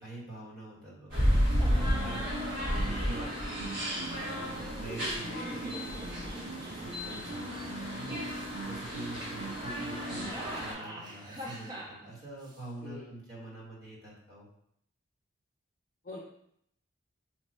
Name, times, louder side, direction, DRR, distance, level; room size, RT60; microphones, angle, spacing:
voice 1, 0.0-14.5, right 1 dB, 50° right, -5 dB, 1.2 m, -46 dB
sound 1, 1.1-10.7, equal, 70° right, 1.2 m, -32 dB
sound 2, 1.3-10.3, right 1 dB, 90° right, 0.5 m, -42 dB
sound 3, 1.6-2.3 3.0-3.7 4.5-7.7 8.2-8.8 9.9-12.6, right 1 dB, 20° right, 0.4 m, -45 dB
voice 2, 9.9-10.2 12.8-13.2 16.0-16.2, left 3 dB, 45° left, -4 dB, 0.5 m, -46 dB
3.0 x 2.2 x 4.2 m, 0.71 s
head